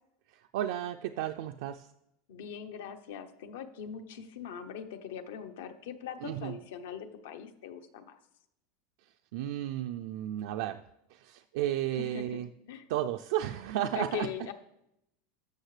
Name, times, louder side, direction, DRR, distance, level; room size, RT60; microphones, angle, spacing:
voice 1, 0.3-1.9 6.2-6.6 9.0-10.8 11.1-12.5 12.9-14.3, right 12 dB, 65° right, 6 dB, 0.3 m, -33 dB
voice 2, 2.3-8.2 12.0-12.4 12.7-12.8 13.9-14.5, left 8 dB, 75° left, 8 dB, 0.8 m, -41 dB
13.0 x 6.6 x 3.2 m, 0.83 s
supercardioid pair, 155°, 0 cm